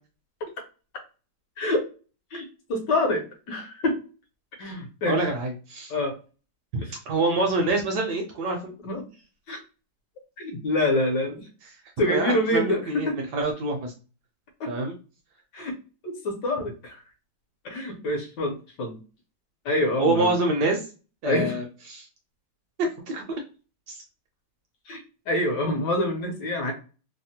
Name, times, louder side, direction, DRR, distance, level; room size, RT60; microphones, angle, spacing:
voice 1, 2.3-4.0 4.6-5.2 5.9-6.1 6.8-6.9 8.8-9.0 9.5-9.6 10.4-11.5 12.0-13.2 14.6-14.7 15.5-15.8 16.0-17.0 17.6-19.0 19.6-20.3 21.2-21.5 24.9-26.7, left 1 dB, 70° left, 2 dB, 1.3 m, -26 dB
voice 2, 5.0-5.9 6.7-8.7 12.1-13.9 14.7-14.9 20.0-20.9 21.2-22.1 23.1-23.2 23.9-24.0, right 2 dB, 70° right, 2 dB, 1.1 m, -26 dB
3.3 x 2.0 x 2.8 m, 0.34 s
omnidirectional pair, 2.1 m